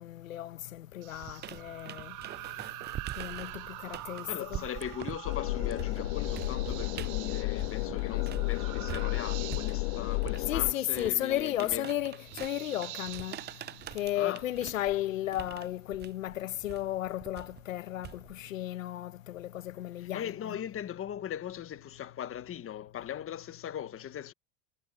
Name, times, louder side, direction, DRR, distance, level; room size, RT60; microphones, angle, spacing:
voice 1, 0.0-2.1 3.2-3.5 3.8-4.6 10.5-13.4 13.9-20.5, left 13 dB, 90° left, 1.3 m, -34 dB
sound 1, 1.0-14.9, right 20 dB, 50° right, 0.8 m, -46 dB
sound 2, 1.2-8.5 8.9-18.5, right 12 dB, 25° right, 0.5 m, -44 dB
voice 2, 3.6-11.8 14.1-14.4 20.0-24.3, left 10 dB, 35° left, 1.5 m, -39 dB
sound 3, 5.2-10.7, left 28 dB, 65° left, 0.7 m, -32 dB
hypercardioid pair, 85°, 38 cm